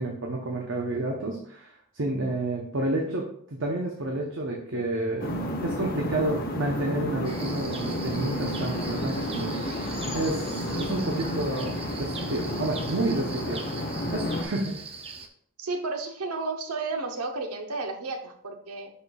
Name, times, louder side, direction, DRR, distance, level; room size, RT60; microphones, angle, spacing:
voice 1, 0.0-5.3 5.6-9.5 10.1-13.8 14.1-14.8, right 2 dB, 55° right, 0 dB, 0.9 m, -30 dB
sound 1, 5.2-14.4, left 1 dB, 45° left, 0.9 m, -31 dB
sound 2, 7.2-15.3, right 5 dB, 25° right, 0.5 m, -41 dB
voice 2, 15.6-18.9, right 3 dB, 85° right, 5 dB, 0.9 m, -32 dB
10.5 x 4.4 x 2.4 m, 0.64 s
head